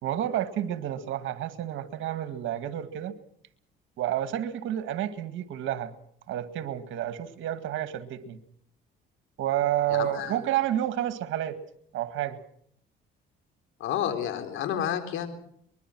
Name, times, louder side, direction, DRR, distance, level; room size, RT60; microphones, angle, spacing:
voice 1, 0.0-3.1 4.0-5.9 6.3-8.4 9.4-11.6 11.9-12.4, right 12 dB, 70° right, 10 dB, 2.0 m, -30 dB
voice 2, 9.9-10.3 13.8-15.3, left 10 dB, 75° left, 7 dB, 3.8 m, -30 dB
23.5 x 21.5 x 6.2 m, 0.66 s
cardioid pair, 90°, 21 cm